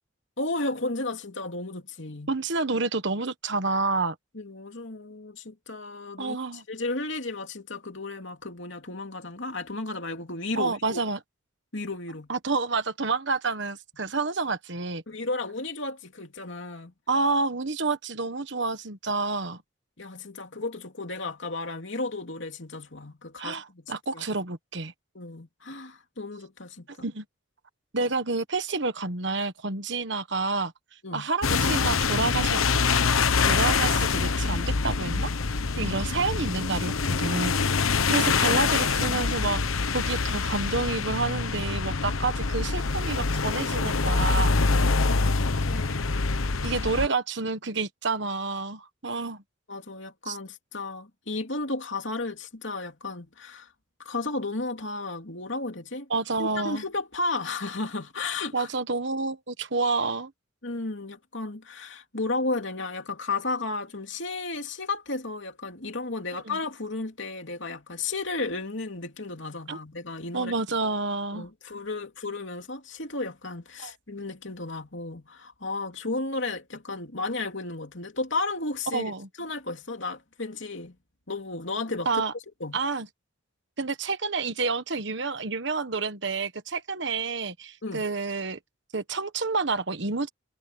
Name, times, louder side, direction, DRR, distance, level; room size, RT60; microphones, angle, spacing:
voice 1, 0.4-2.3 4.3-11.0 11.7-12.3 15.1-16.9 20.0-24.2 25.1-27.1 28.0-28.1 31.0-31.3 35.8-36.0 45.0-46.6 49.7-53.7 54.0-56.1 56.4-58.7 60.6-70.5 71.3-80.9 81.3-82.2 82.6-82.8 87.8-88.1, left 3 dB, 65° left, 3.0 m, -34 dB
voice 2, 2.3-4.1 6.2-6.6 10.6-11.2 12.3-15.0 17.1-19.6 23.4-24.9 27.0-27.2 27.9-30.7 31.1-32.6 33.5-35.3 35.8-37.5 38.1-39.6 39.9-44.6 46.6-49.4 50.3-50.4 56.1-56.8 58.5-60.3 66.5-66.6 69.7-69.8 70.3-71.5 73.8-73.9 78.9-79.3 82.0-82.3 82.7-83.1 83.8-88.6 88.9-90.3, right 3 dB, 60° right, 1.3 m, -29 dB
sound 1, 31.4-47.1, left 4 dB, 85° left, 1.1 m, -25 dB
head